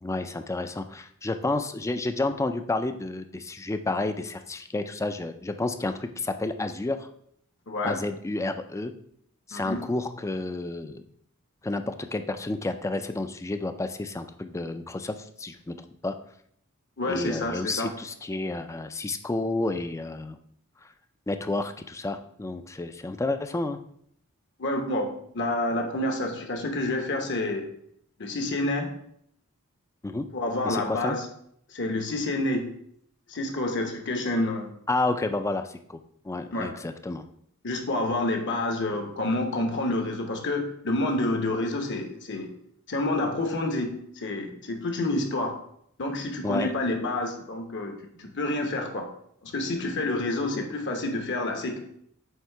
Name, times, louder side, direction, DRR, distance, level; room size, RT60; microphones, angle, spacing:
voice 1, 0.0-7.1 7.8-8.9 9.5-11.0 11.6-15.8 16.0-16.1 17.1-20.4 21.3-23.8 30.0-30.3 30.6-31.2 34.9-36.0 36.2-37.2 46.4-46.7, left 2 dB, 15° left, 9 dB, 0.3 m, -30 dB
voice 2, 7.7-8.0 9.5-9.8 17.0-17.9 24.6-27.7 28.2-28.9 30.3-31.2 31.7-32.7 33.3-34.7 36.5-36.7 37.6-42.5 42.9-45.6 46.0-49.1 49.4-51.8, left 2 dB, 55° left, 3 dB, 1.0 m, -28 dB
7.9 x 2.8 x 4.5 m, 0.69 s
head